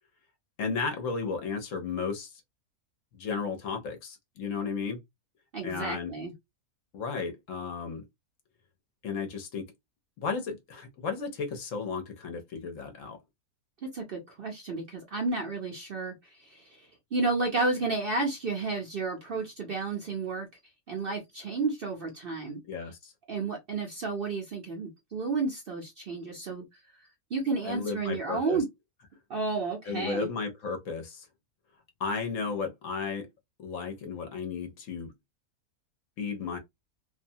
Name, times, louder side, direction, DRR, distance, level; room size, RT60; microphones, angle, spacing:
voice 1, 0.6-2.4 3.1-5.0 5.6-6.1 6.9-8.0 9.0-9.7 10.2-13.2 22.7-23.1 27.6-28.6 29.9-31.3 32.0-33.3 33.6-35.1 36.2-36.6, left 5 dB, 65° left, 1.0 m, -34 dB
voice 2, 5.5-6.3 13.8-16.8 17.1-20.5 20.9-22.6 23.3-26.8 27.3-28.6 29.3-30.3, right 3 dB, 50° right, 0.7 m, -32 dB
2.6 x 2.2 x 2.6 m
omnidirectional pair, 1.6 m